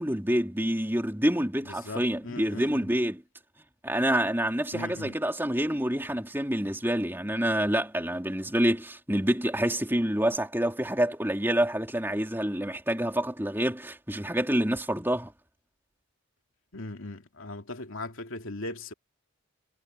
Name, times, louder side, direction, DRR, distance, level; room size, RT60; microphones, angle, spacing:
voice 1, 0.0-3.2 3.8-15.3, right 1 dB, 10° right, 3.6 m, -27 dB
voice 2, 1.6-2.9 4.7-5.2 16.7-18.9, left 2 dB, 70° left, 2.5 m, -39 dB
head